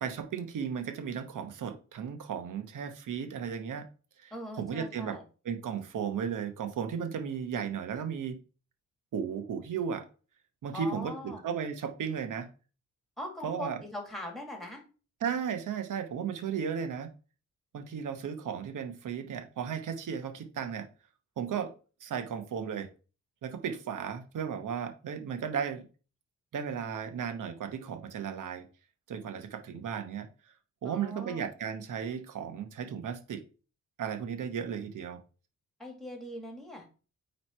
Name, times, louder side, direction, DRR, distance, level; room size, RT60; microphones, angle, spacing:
voice 1, 0.0-3.9 4.2-5.2 5.4-8.4 9.1-10.0 10.6-12.5 13.4-13.8 15.2-17.1 17.7-20.9 21.4-21.7 22.0-22.9 23.4-25.8 26.5-28.7 29.1-30.3 30.8-33.4 34.0-35.2, right 7 dB, 75° right, 8 dB, 1.1 m, -35 dB
voice 2, 4.3-5.2 10.7-11.4 13.2-14.8 30.8-31.4 35.8-36.9, left 1 dB, ahead, 2 dB, 2.1 m, -41 dB
9.0 x 3.2 x 4.4 m, 0.36 s
wide cardioid pair, 135°, 31 cm